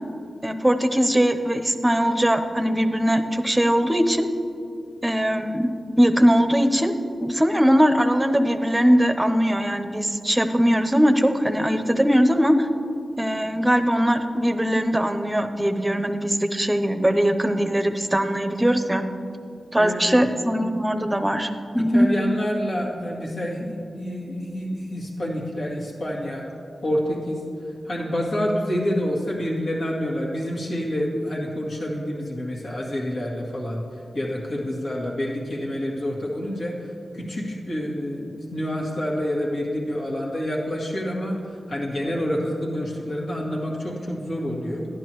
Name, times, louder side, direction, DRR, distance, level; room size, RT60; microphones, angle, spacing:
voice 1, 0.4-4.3 5.0-5.7 6.0-6.9 7.2-12.7 13.2-19.0 19.7-22.1, equal, 15° right, 8 dB, 0.7 m, -20 dB
voice 2, 19.8-20.3 21.7-26.4 26.8-27.4 27.8-33.8 34.1-44.9, equal, 70° left, -4 dB, 2.0 m, -28 dB
11.0 x 10.5 x 3.1 m, 2.6 s
cardioid pair, 45°, 0 cm